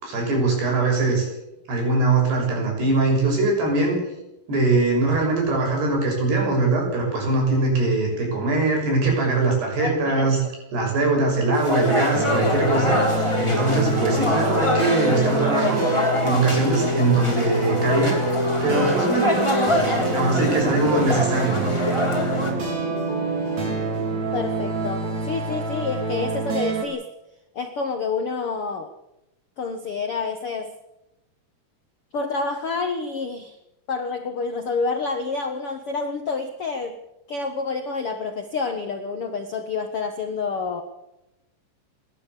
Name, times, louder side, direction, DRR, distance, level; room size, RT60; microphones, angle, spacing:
voice 1, 0.0-1.3 1.7-4.0 4.5-10.4 10.7-13.1 13.4-15.9 16.2-18.2 18.6-19.4 20.1-21.7, right 3 dB, 80° right, 1 dB, 9.3 m, -22 dB
voice 2, 9.8-10.3 24.3-27.1 27.5-28.9 29.6-30.7 32.1-33.6 33.9-37.0 37.3-40.8, left 4 dB, 85° left, 6 dB, 1.2 m, -28 dB
sound 1, 11.5-22.5, left 1 dB, 5° left, 3.7 m, -25 dB
sound 2, 12.1-26.9, right 2 dB, 45° right, 5.1 m, -26 dB
28.0 x 12.0 x 8.4 m, 0.93 s
omnidirectional pair, 4.7 m